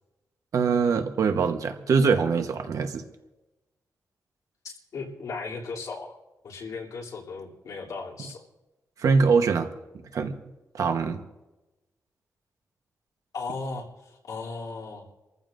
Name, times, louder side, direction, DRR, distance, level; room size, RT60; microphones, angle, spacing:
voice 1, 0.5-3.0 9.0-9.7 10.1-10.3 10.7-11.2, right 5 dB, 70° right, 6 dB, 1.1 m, -23 dB
voice 2, 4.6-6.2 6.4-8.4 13.3-15.1, left 4 dB, 80° left, -2 dB, 3.1 m, -36 dB
29.0 x 14.5 x 2.6 m, 1.0 s
wide cardioid pair, 145°, 6 cm